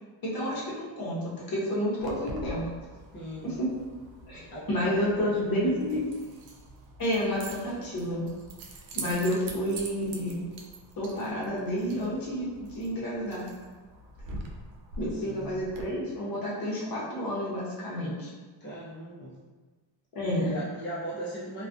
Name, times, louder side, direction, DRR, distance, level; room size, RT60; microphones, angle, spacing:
voice 1, 0.2-2.7 3.4-3.7 4.3-4.4 4.7-6.0 7.0-8.3 8.9-10.4 11.0-13.5 15.0-18.3 20.1-20.6, equal, 45° left, -5 dB, 0.9 m, -30 dB
Keys jangling, 2.0-15.8, right 2 dB, 70° right, 0.6 m, -44 dB
voice 2, 3.1-3.5 4.5-6.0 15.1-15.7 18.6-19.4 20.4-21.7, right 1 dB, 25° left, -8 dB, 0.6 m, -38 dB
2.3 x 2.3 x 2.5 m, 1.3 s
cardioid pair, 100°, 48 cm